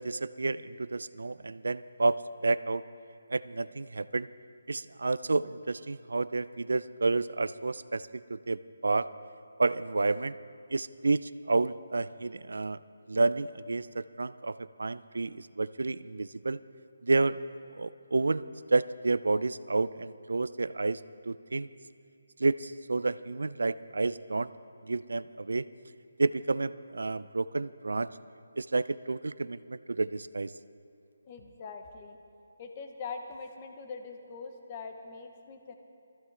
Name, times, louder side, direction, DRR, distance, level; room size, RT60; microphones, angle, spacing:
voice 1, 0.0-2.8 3.3-4.3 4.7-9.1 9.6-10.3 10.7-12.8 13.1-16.6 17.0-17.4 17.7-18.4 18.7-21.0 21.3-21.7 22.4-24.5 24.8-25.7 26.2-28.1 28.6-30.5, right 3 dB, 80° right, 16 dB, 0.4 m, -30 dB
voice 2, 31.2-32.2 32.6-35.7, left 4 dB, 25° left, 5 dB, 0.8 m, -42 dB
20.5 x 14.5 x 3.3 m, 2.4 s
hypercardioid pair, 170°, 0 cm